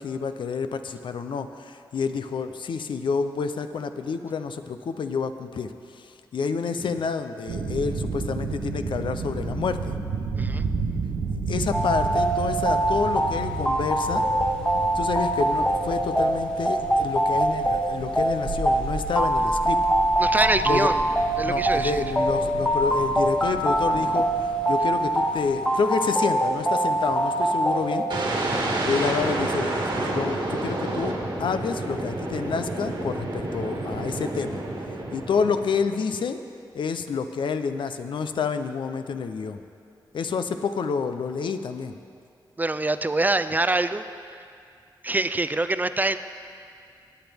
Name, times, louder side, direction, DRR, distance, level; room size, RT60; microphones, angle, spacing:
voice 1, 0.0-10.0 11.5-14.2 14.9-19.8 20.7-20.9 21.4-28.1 28.9-29.7 30.0-34.6 35.1-36.4 36.7-39.6 40.1-41.9, left 5 dB, 75° left, 9 dB, 0.5 m, -28 dB
sound 1, 7.5-25.8, right 4 dB, 90° right, 0.8 m, -33 dB
sound 2, 11.7-28.1, right 1 dB, 10° left, 1.2 m, -24 dB
voice 2, 20.2-21.0 21.4-22.0 24.0-24.1 42.6-44.1 45.0-46.2, right 2 dB, 20° right, 12 dB, 0.4 m, -25 dB
sound 3, 28.1-36.0, right 2 dB, 70° right, 1.8 m, -29 dB
18.0 x 8.0 x 3.5 m, 2.4 s
cardioid pair, 70°, 8 cm